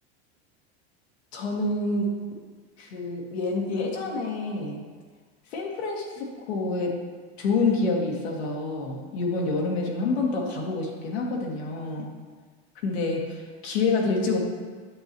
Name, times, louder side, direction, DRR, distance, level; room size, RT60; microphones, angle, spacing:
voice 1, 1.3-2.3 2.8-4.8 5.5-6.9 7.4-12.1 12.8-14.4, left 3 dB, 85° left, -1 dB, 1.8 m, -27 dB
9.2 x 7.2 x 3.0 m, 1.5 s
supercardioid pair, 130°, 31 cm